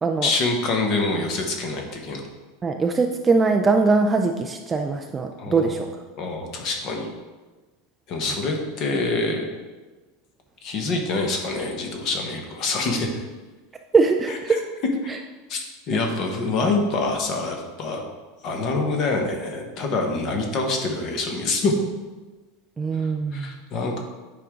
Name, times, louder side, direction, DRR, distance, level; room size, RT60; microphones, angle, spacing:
voice 1, 0.2-2.2 5.4-5.9 6.2-7.1 8.1-9.5 10.6-13.2 15.0-15.1 15.5-18.0 18.4-21.7 22.9-24.0, left 3 dB, 35° left, 2 dB, 1.1 m, -26 dB
voice 2, 2.6-5.9 13.9-14.6 15.1-15.2 15.9-16.0 22.8-23.6, right 4 dB, 10° right, 3 dB, 0.3 m, -21 dB
9.4 x 5.1 x 3.6 m, 1.3 s
supercardioid pair, 175°, 0 cm